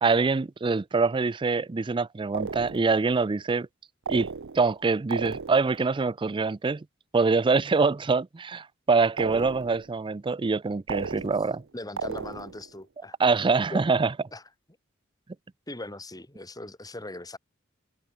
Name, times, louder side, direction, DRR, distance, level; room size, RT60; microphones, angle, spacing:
voice 1, 0.0-3.7 4.1-4.3 4.5-6.8 7.1-11.6 13.2-14.1, right 4 dB, 25° right, 0.4 m, -24 dB
sound 1, 2.3-3.1 4.1-4.8 5.1-5.8 9.2-9.9 10.9-11.6 12.0-12.7, right 5 dB, 65° right, 0.7 m, -35 dB
voice 2, 11.7-13.2 13.7-13.8 14.3-14.4 15.7-17.4, left 2 dB, 20° left, 3.5 m, -39 dB
head